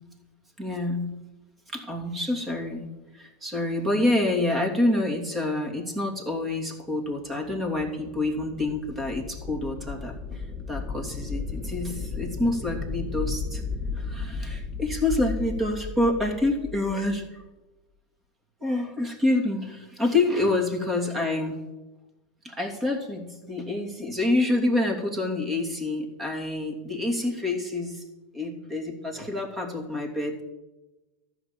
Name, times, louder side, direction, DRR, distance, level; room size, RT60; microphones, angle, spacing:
voice 1, 0.6-1.1 1.7-2.9 3.1-13.6 13.9-17.4 18.6-21.5 22.4-28.0 28.3-30.4, left 2 dB, 20° right, 3 dB, 2.9 m, -27 dB
sound 1, 7.1-17.3, left 4 dB, 10° left, 2.3 m, -35 dB
14.0 x 6.2 x 7.5 m, 1.1 s
hypercardioid pair, 95°, 0 cm